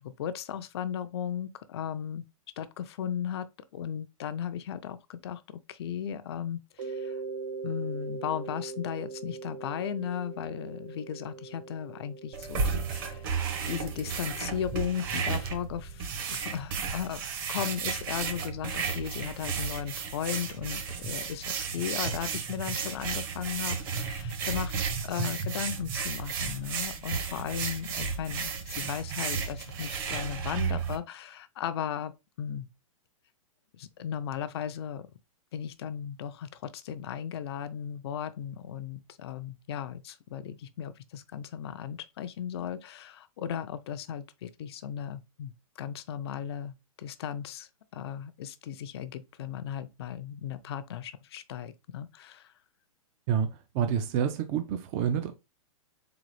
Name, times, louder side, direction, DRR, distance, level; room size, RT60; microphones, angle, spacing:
voice 1, 0.0-2.2 2.6-3.5 3.7-5.4 5.7-7.2 7.6-13.4 13.7-17.2 17.5-24.7 25.0-32.7 33.7-35.1 35.5-52.5, left 9 dB, 45° left, 0.4 m, -36 dB
Mallet percussion, 6.8-15.4, right 5 dB, 70° right, 1.0 m, -42 dB
sound 1, 12.3-31.0, right 5 dB, 40° right, 0.9 m, -33 dB
voice 2, 53.7-55.3, right 8 dB, 25° right, 0.3 m, -28 dB
3.9 x 3.9 x 3.2 m
hypercardioid pair, 155°, 18 cm